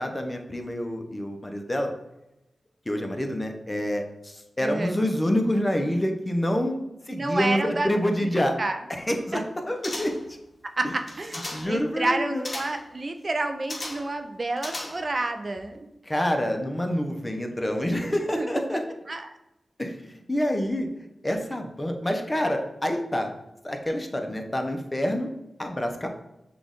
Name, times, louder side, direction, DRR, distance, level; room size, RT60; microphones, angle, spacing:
voice 1, 0.0-1.9 2.9-8.6 8.9-10.1 11.5-12.5 16.0-18.8 19.8-20.9 21.2-23.3 23.6-25.3 25.6-26.1, equal, 25° left, 4 dB, 0.8 m, -27 dB
voice 2, 4.6-4.9 7.1-7.9 8.2-8.8 9.3-9.4 10.8-15.9 18.4-18.6 19.1-19.3, right 2 dB, 50° right, 6 dB, 0.5 m, -29 dB
sound 1, 9.8-10.3 11.0-11.8 12.4-12.9 13.7-14.2 14.6-15.2 15.6-15.7, left 1 dB, 45° left, 1.1 m, -36 dB
5.9 x 2.5 x 3.6 m, 0.90 s
cardioid pair, 40°, 0 cm